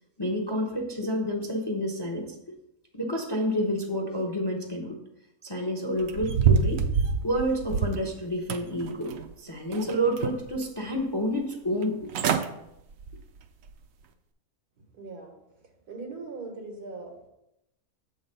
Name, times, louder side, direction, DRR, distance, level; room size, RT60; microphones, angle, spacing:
voice 1, 0.2-2.5 2.9-5.0 5.4-6.8 7.2-12.1, equal, 30° left, 1 dB, 0.4 m, -29 dB
sound 1, 6.0-8.1 8.5-9.3 9.7-10.6 11.0-11.1 11.8-11.9 12.1-12.5 12.9-13.2 13.7-13.8, right 6 dB, 70° right, 0.9 m, -26 dB
voice 2, 14.9-15.3 15.9-17.3, right 3 dB, 85° right, 2 dB, 1.9 m, -40 dB
7.3 x 3.9 x 5.3 m, 0.85 s
omnidirectional pair, 1.6 m